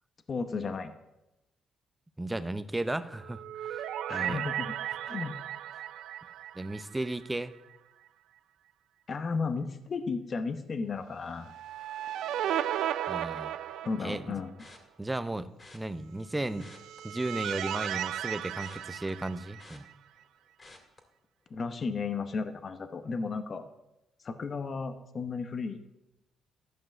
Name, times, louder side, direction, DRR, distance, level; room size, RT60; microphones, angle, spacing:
voice 1, 0.3-0.9 4.1-4.7 5.0-5.3 9.1-11.5 13.8-14.5 21.5-23.6 24.2-25.8, left 4 dB, 45° left, 9 dB, 0.9 m, -34 dB
voice 2, 2.2-4.4 6.5-7.6 13.1-13.5 14.0-14.3 15.0-16.7 17.0-19.9, right 2 dB, 10° right, 13 dB, 0.7 m, -35 dB
sound 1, 3.1-7.4 7.7-7.8 11.4-14.5 16.5-19.9, right 11 dB, 80° right, 0.4 m, -35 dB
sound 2, 14.6-15.1 15.6-15.8 16.5-17.7 18.0-20.3 20.6-21.0 21.5-21.7 22.0-22.1, left 2 dB, 30° left, 2.2 m, -54 dB
12.0 x 5.5 x 7.8 m, 0.94 s
cardioid pair, 90°, 0 cm